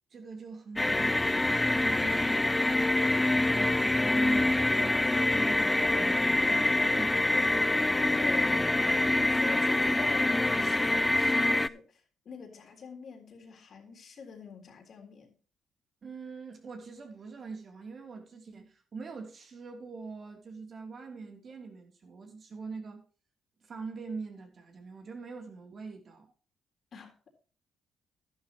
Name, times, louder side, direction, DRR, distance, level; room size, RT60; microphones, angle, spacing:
voice 1, 0.1-7.6 16.0-23.0 23.6-26.3, right 4 dB, 50° right, 3.0 m, -43 dB
sound 1, 0.8-11.7, left 2 dB, 15° left, 0.4 m, -25 dB
voice 2, 7.8-15.4 26.9-27.3, left 5 dB, 55° left, 3.6 m, -46 dB
12.0 x 11.5 x 3.0 m
cardioid pair, 90°, 0 cm